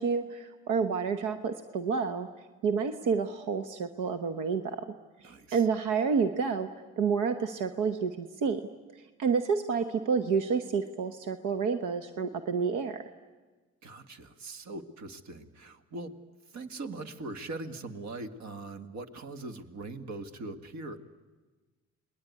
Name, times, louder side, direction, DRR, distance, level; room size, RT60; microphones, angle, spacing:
voice 1, 0.0-2.3 2.6-4.9 5.2-6.7 7.0-8.6 9.2-13.0, right 5 dB, 90° right, 9 dB, 1.1 m, -29 dB
voice 2, 5.2-5.7 13.8-16.2 16.5-21.0, right 2 dB, 65° right, 9 dB, 1.9 m, -41 dB
28.0 x 20.0 x 9.6 m, 1.3 s
cardioid pair, 90°, 30 cm